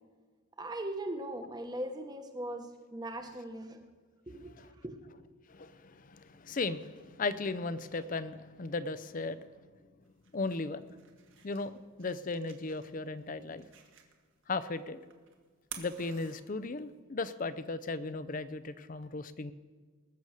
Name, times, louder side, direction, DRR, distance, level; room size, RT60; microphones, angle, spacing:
voice 1, 0.6-3.8 4.3-5.0, right 1 dB, 20° right, 5 dB, 1.1 m, -39 dB
voice 2, 4.3-4.7 5.5-9.5 10.3-10.9 11.4-13.7 14.5-15.0 15.8-19.5, left 3 dB, 40° left, 15 dB, 0.5 m, -36 dB
sound 1, 10.0-17.0, right 8 dB, 60° right, 1.5 m, -53 dB
20.5 x 7.0 x 6.5 m, 1.5 s
head